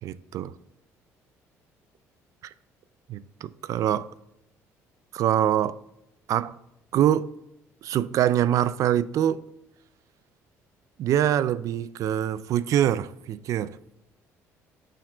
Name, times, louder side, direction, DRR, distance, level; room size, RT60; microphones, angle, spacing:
voice 1, 0.0-0.5 2.4-2.5 3.1-4.1 5.1-5.8 6.3-6.6 6.9-7.3 7.8-9.4 11.0-13.8, right 11 dB, 60° right, 0.3 m, -24 dB
6.2 x 4.3 x 4.4 m
cardioid pair, 95°, 6 cm